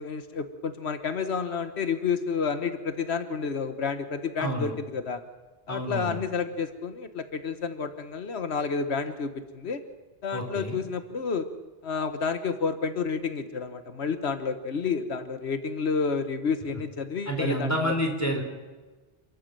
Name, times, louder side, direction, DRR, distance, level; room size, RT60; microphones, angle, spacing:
voice 1, 0.0-5.2 5.7-9.8 10.2-11.5 11.8-17.9, left 5 dB, 85° left, 9 dB, 1.5 m, -30 dB
voice 2, 4.4-4.7 5.7-6.2 10.3-10.8 17.3-18.4, equal, 15° left, 3 dB, 3.7 m, -29 dB
28.5 x 13.0 x 7.7 m, 1.3 s
omnidirectional pair, 1.1 m